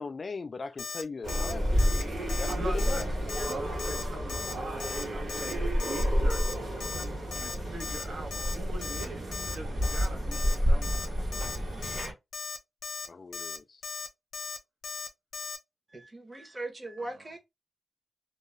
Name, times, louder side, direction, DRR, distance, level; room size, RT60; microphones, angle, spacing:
voice 1, 0.0-3.1 13.1-13.8, left 4 dB, 45° left, 0.3 m, -39 dB
Alarm, 0.8-1.0 1.3-1.5 1.8-2.0 2.3-2.5 2.8-3.0 3.3-3.5 3.8-4.0 4.3-4.5 4.8-5.0 5.3-5.5 5.8-6.0 6.3-6.5 6.8-7.0 7.3-7.5 7.8-8.0 8.3-8.5 8.8-9.1 9.3-9.6 9.8-10.1 10.3-10.6 10.8-11.1 11.3-11.6 11.8-12.1 12.3-12.6 12.8-13.1 13.3-13.6 13.8-14.1 14.3-14.6 14.8-15.1 15.3-15.6, left 4 dB, 80° left, 0.6 m, -37 dB
sound 1, 1.2-12.1, equal, 45° right, 1.2 m, -30 dB
voice 2, 2.5-3.0 3.5-6.7 7.4-11.1, right 2 dB, 80° right, 0.7 m, -43 dB
voice 3, 15.9-17.4, right 2 dB, 25° right, 0.7 m, -39 dB
2.3 x 2.0 x 3.0 m
wide cardioid pair, 110°, 0 cm